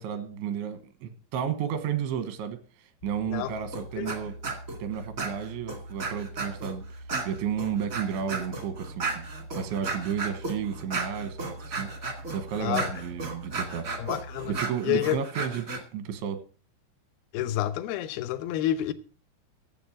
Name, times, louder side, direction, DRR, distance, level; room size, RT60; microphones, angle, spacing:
voice 1, 0.0-2.6 3.0-4.4 4.8-6.9 7.3-9.3 9.6-11.9 12.3-13.9 14.6-15.7 15.9-16.4, right 8 dB, 85° right, 3.6 m, -32 dB
sound 1, 3.0-14.6, right 1 dB, 55° left, 0.9 m, -44 dB
voice 2, 3.3-3.6 4.0-4.1 12.6-12.9 13.9-14.6 14.8-15.2 17.3-18.9, left 12 dB, 80° left, 2.3 m, -29 dB
sound 2, 3.7-4.2 4.4-4.8 5.2-6.7 7.1-15.8, right 3 dB, 65° right, 0.8 m, -34 dB
13.5 x 7.6 x 6.2 m
omnidirectional pair, 5.2 m